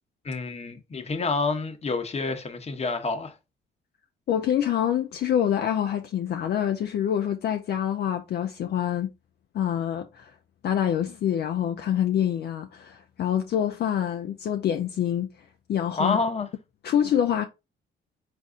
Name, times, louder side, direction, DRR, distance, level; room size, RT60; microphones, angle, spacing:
voice 1, 0.2-3.3 16.0-16.5, left 4 dB, 30° left, 0.9 m, -28 dB
voice 2, 4.3-9.1 9.5-10.3 10.6-15.3 15.7-16.2 16.8-17.4, left 9 dB, 55° left, 0.4 m, -26 dB
4.0 x 2.5 x 3.6 m
cardioid pair, 90°, 20 cm